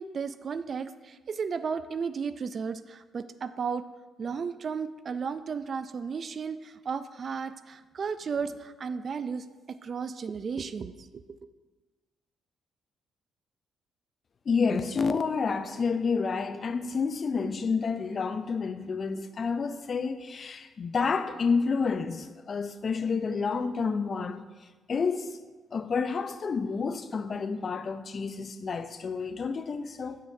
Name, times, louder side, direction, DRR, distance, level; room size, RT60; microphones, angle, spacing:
voice 1, 0.0-3.9 4.2-11.1, right 5 dB, 45° right, 0.3 m, -34 dB
voice 2, 14.5-24.4 24.9-25.4 25.7-30.2, left 5 dB, 45° left, 0.4 m, -29 dB
8.1 x 6.4 x 2.6 m
cardioid pair, 90°, 0 cm